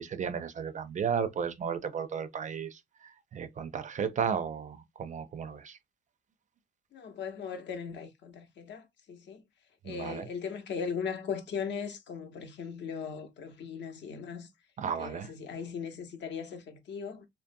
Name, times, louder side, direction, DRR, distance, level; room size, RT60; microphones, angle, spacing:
voice 1, 0.0-5.8 9.8-10.3 14.8-15.3, right 7 dB, 40° right, 0.4 m, -34 dB
voice 2, 6.9-9.4 9.8-14.5 15.0-17.3, left 6 dB, 65° left, 0.7 m, -38 dB
2.6 x 2.1 x 2.5 m
cardioid pair, 90°, 20 cm